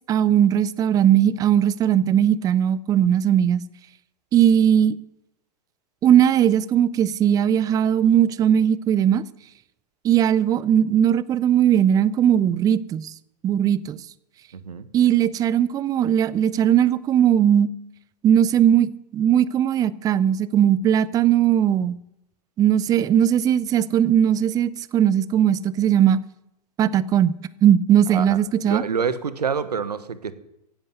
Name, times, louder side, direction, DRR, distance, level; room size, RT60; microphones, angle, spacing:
voice 1, 0.1-3.6 4.3-5.0 6.0-9.2 10.0-13.1 13.4-14.0 14.9-17.7 18.2-21.9 22.6-26.2 26.8-27.3 27.6-28.8, right 9 dB, 15° right, 0.5 m, -19 dB
voice 2, 14.5-14.9 28.1-28.4 28.6-30.3, right 6 dB, 70° right, 1.3 m, -27 dB
16.0 x 11.0 x 7.9 m
figure-of-eight pair, 100°, 21 cm